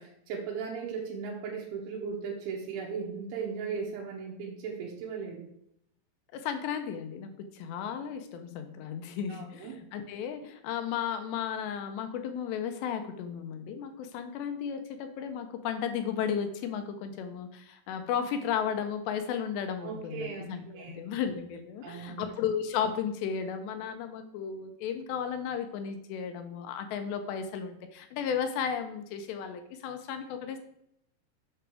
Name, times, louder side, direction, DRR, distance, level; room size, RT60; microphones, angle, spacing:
voice 1, 0.0-5.5 9.3-9.8 19.8-21.0 21.8-22.3, right 6 dB, 85° right, -2 dB, 3.6 m, -37 dB
voice 2, 6.3-30.6, left 8 dB, 80° left, 7 dB, 2.7 m, -34 dB
7.8 x 6.4 x 4.7 m, 0.74 s
omnidirectional pair, 5.3 m